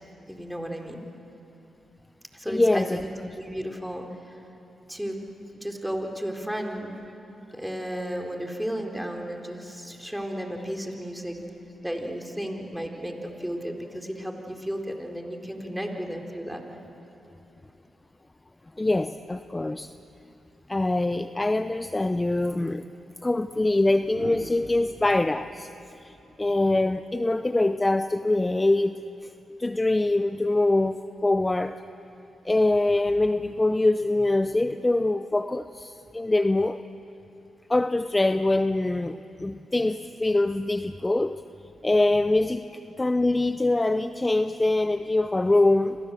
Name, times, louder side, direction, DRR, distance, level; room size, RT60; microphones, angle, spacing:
voice 1, 0.3-1.0 2.3-4.4 4.9-5.2 5.5-6.9 7.5-11.4 11.8-16.6, equal, 5° right, 2 dB, 4.4 m, -33 dB
voice 2, 2.5-3.0 18.8-19.9 20.7-22.9 23.2-25.7 26.4-29.0 29.6-31.8 32.4-36.8 37.7-41.4 41.8-42.7 43.0-46.0, left 2 dB, 20° left, 11 dB, 0.7 m, -24 dB
sound 1, 24.1-27.1 28.7-29.0, right 3 dB, 55° right, 2.9 m, -45 dB
29.5 x 25.5 x 7.8 m, 2.9 s
supercardioid pair, 50°, 0 cm